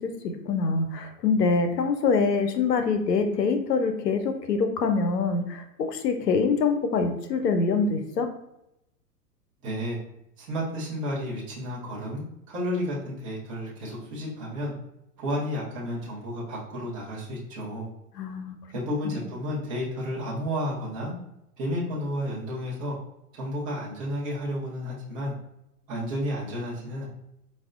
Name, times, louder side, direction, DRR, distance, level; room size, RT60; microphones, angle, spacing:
voice 1, 0.0-8.3 18.2-18.6 19.0-19.2, left 4 dB, 90° left, 7 dB, 0.6 m, -25 dB
voice 2, 9.6-10.0 10.4-14.7 15.2-17.9 18.7-21.1 21.6-23.0 23.4-25.3 25.9-27.1, equal, 10° right, -6 dB, 0.3 m, -32 dB
4.6 x 2.1 x 2.4 m, 0.83 s
hypercardioid pair, 115°, 47 cm